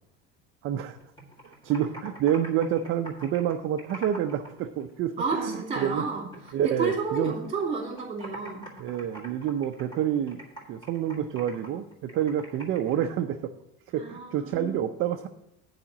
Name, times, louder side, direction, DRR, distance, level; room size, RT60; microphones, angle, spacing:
voice 1, 0.6-1.0 1.4-5.1 5.4-6.0 6.5-7.3 8.8-10.4 10.7-13.5 13.9-15.3, right 10 dB, 40° right, 5 dB, 0.5 m, -28 dB
Computer keyboard, 1.0-4.5 4.8-6.0 6.3-7.6 7.9-13.1, right 1 dB, 15° left, 2.0 m, -44 dB
voice 2, 5.2-8.7 14.0-14.8, right 4 dB, 20° right, 1 dB, 2.4 m, -31 dB
8.6 x 5.0 x 7.3 m, 0.83 s
cardioid pair, 160°, 32 cm